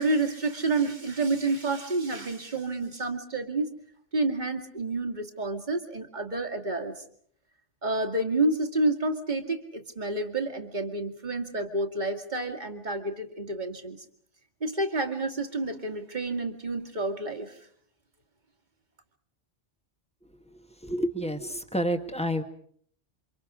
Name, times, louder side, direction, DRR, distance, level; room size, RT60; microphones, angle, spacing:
voice 1, 0.0-3.7 4.1-6.9 7.8-14.0 14.6-17.6, right 2 dB, 40° right, 5 dB, 2.3 m, -29 dB
voice 2, 20.8-22.4, equal, 5° left, 6 dB, 1.6 m, -29 dB
29.0 x 26.0 x 5.0 m, 0.62 s
omnidirectional pair, 1.2 m